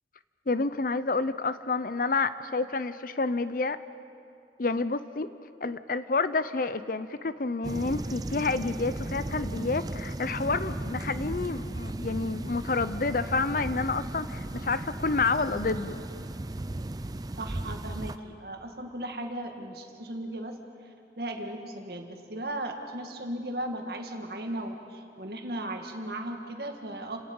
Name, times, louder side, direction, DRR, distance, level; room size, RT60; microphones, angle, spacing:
voice 1, 0.5-3.8 4.6-5.3 5.6-16.0, left 3 dB, 50° left, 13 dB, 0.6 m, -29 dB
sound 1, 7.6-18.2, right 1 dB, 20° right, 0.5 m, -36 dB
voice 2, 17.4-20.5 21.2-27.2, right 1 dB, 55° right, 3 dB, 2.0 m, -36 dB
29.5 x 18.5 x 5.5 m, 2.5 s
head